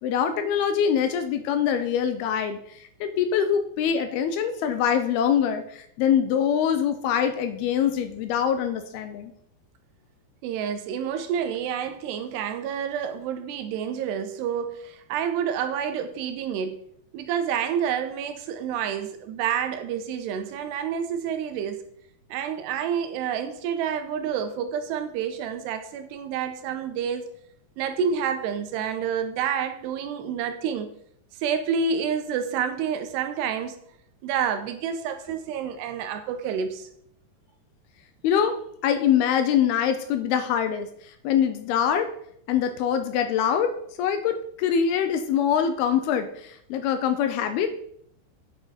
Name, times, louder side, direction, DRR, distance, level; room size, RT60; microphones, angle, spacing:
voice 1, 0.0-9.3 38.2-38.6 38.8-42.1 42.5-43.7 44.0-47.7, left 8 dB, 80° left, 8 dB, 2.4 m, -24 dB
voice 2, 10.4-16.8 17.1-21.8 22.3-27.3 27.8-30.9 31.4-33.8 34.2-36.9, right 7 dB, 85° right, 8 dB, 2.8 m, -28 dB
8.8 x 6.5 x 4.9 m, 0.68 s
omnidirectional pair, 4.9 m